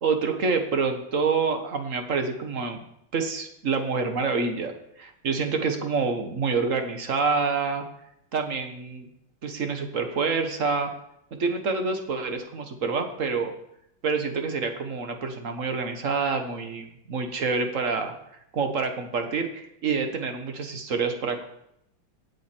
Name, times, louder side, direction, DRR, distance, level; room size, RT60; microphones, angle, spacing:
voice 1, 0.0-2.8 3.1-7.8 8.3-9.1 9.4-10.9 11.3-13.5 14.0-18.1 18.5-21.5, right 4 dB, 45° right, 6 dB, 1.4 m, -27 dB
17.0 x 6.5 x 4.4 m, 0.78 s
omnidirectional pair, 2.2 m